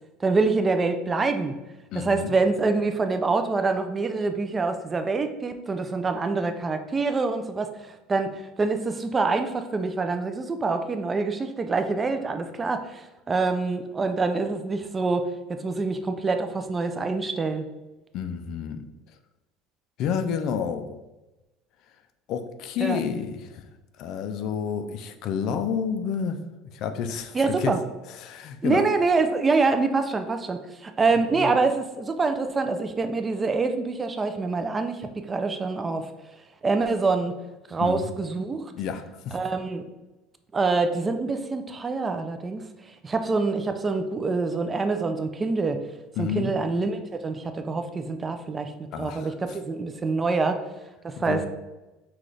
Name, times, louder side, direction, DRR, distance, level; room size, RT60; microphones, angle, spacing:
voice 1, 0.2-1.6 1.9-17.7 22.8-23.0 27.3-27.8 28.6-36.1 36.6-37.4 37.7-38.7 39.3-39.8 40.5-45.8 46.2-48.7 49.0-50.6 51.0-51.5, right 3 dB, 20° right, 7 dB, 0.4 m, -26 dB
voice 2, 1.9-2.3 18.1-18.8 20.0-21.0 22.3-23.7 24.0-26.4 26.7-27.7 28.2-28.9 31.4-31.5 37.8-38.1 38.7-39.4 46.2-46.5 48.9-49.3 51.3-51.5, left 7 dB, 55° left, 9 dB, 0.4 m, -30 dB
5.9 x 2.4 x 3.2 m, 1.0 s
supercardioid pair, 125°, 0 cm